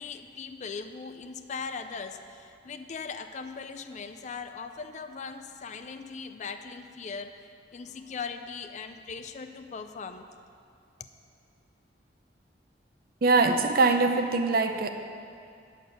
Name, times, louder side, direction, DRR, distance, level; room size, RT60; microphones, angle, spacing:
voice 1, 0.0-10.3 11.0-11.1, left 5 dB, 40° left, 8 dB, 0.4 m, -39 dB
voice 2, 13.2-14.9, right 3 dB, 55° right, 7 dB, 0.6 m, -23 dB
8.7 x 6.6 x 6.3 m, 2.4 s
head